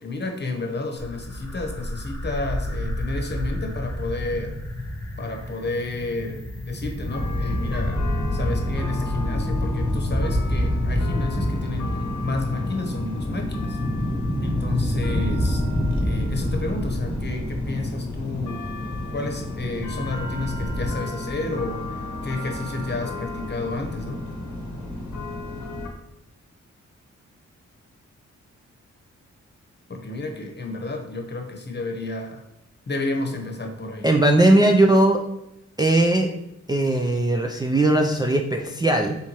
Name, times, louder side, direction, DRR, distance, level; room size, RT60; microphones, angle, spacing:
voice 1, 0.0-4.6 5.2-11.9 12.2-13.8 14.4-15.6 16.0-18.6 19.1-24.2 29.9-32.4 32.9-34.1, left 2 dB, 35° left, 3 dB, 0.9 m, -31 dB
sound 1, 1.0-20.9, left 1 dB, 10° left, 0.8 m, -28 dB
sound 2, 7.1-25.9, left 2 dB, 75° left, 0.8 m, -33 dB
voice 2, 34.0-35.2 35.8-36.3 36.7-39.2, right 1 dB, 15° right, 1 dB, 0.3 m, -18 dB
4.4 x 3.5 x 2.9 m, 0.88 s
cardioid pair, 65°, 30 cm